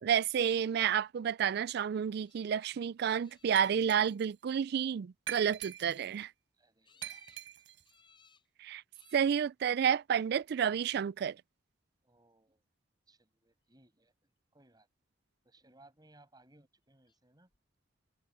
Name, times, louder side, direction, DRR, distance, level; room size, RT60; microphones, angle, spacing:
voice 1, 0.0-6.3 8.6-8.8 9.1-11.4, right 8 dB, 55° right, 0.3 m, -30 dB
sound 1, 2.2-2.7 3.2-3.9 6.8-7.5 7.9-8.5 8.9-9.5 10.4-10.9 17.1-17.2 17.5-17.6, left 5 dB, 25° left, 7.6 m, -66 dB
Glass, 3.6-4.3 5.3-6.2 7.0-7.9, right 11 dB, 75° right, 6.7 m, -45 dB
voice 2, 6.6-7.2 7.6-7.7 12.0-12.6 13.1-14.1 14.5-14.9 15.4-17.5, right 2 dB, 20° right, 6.3 m, -64 dB
head